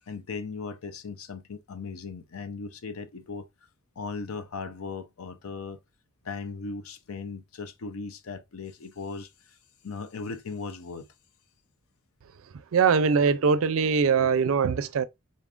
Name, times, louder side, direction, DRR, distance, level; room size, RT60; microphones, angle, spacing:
voice 1, 0.1-3.5 4.0-5.8 6.2-9.6 9.8-11.1, left 4 dB, 85° left, 0.6 m, -37 dB
voice 2, 12.7-15.0, right 5 dB, 70° right, 0.4 m, -22 dB
3.8 x 2.4 x 3.6 m
head